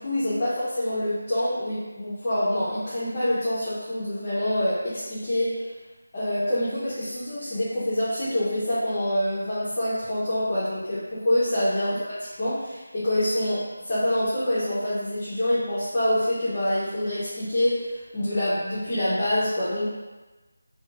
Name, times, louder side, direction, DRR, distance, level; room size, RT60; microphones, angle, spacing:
voice 1, 0.0-5.6 6.1-12.0 12.4-19.8, left 1 dB, 25° left, -12 dB, 0.5 m, -26 dB
2.7 x 2.2 x 2.4 m, 1.2 s
figure-of-eight pair, 175°, 0 cm